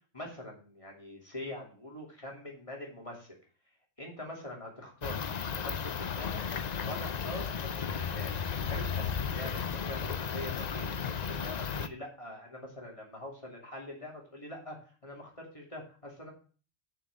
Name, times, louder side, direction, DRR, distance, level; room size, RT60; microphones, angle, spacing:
voice 1, 0.1-3.3 4.0-5.2 5.5-6.4 6.8-8.4 8.7-14.8 15.0-16.3, left 1 dB, 25° left, -1 dB, 2.8 m, -44 dB
sound 1, 5.0-11.9, left 6 dB, 45° left, 0.6 m, -34 dB
6.7 x 6.1 x 7.4 m, 0.38 s
omnidirectional pair, 1.2 m